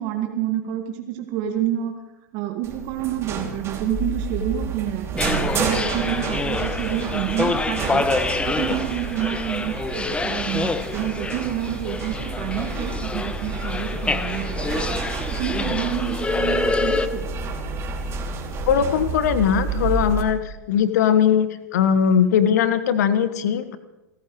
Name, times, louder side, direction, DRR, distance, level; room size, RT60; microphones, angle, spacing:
voice 1, 0.0-1.9 2.3-15.0 15.3-17.3, right 11 dB, 45° right, 4 dB, 1.7 m, -28 dB
sound 1, 2.6-20.2, right 4 dB, 25° right, 2.6 m, -30 dB
sound 2, 5.2-17.1, left 3 dB, 10° left, 0.8 m, -27 dB
voice 2, 18.7-20.4 20.7-23.8, left 8 dB, 65° left, 12 dB, 1.4 m, -19 dB
30.0 x 14.0 x 3.1 m, 0.99 s
hypercardioid pair, 100°, 10 cm